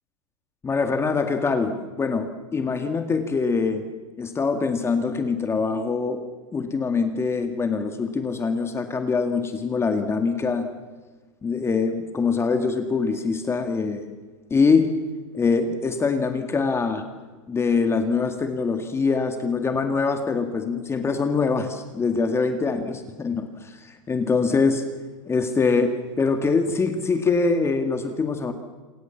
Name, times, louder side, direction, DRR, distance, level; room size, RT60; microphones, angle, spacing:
voice 1, 0.6-3.9 4.2-6.2 6.5-10.7 11.4-14.1 14.5-14.9 15.3-17.0 17.5-24.8 25.3-28.5, left 4 dB, 15° left, 7 dB, 2.1 m, -24 dB
28.0 x 25.5 x 7.3 m, 1.3 s
hypercardioid pair, 130°, 17 cm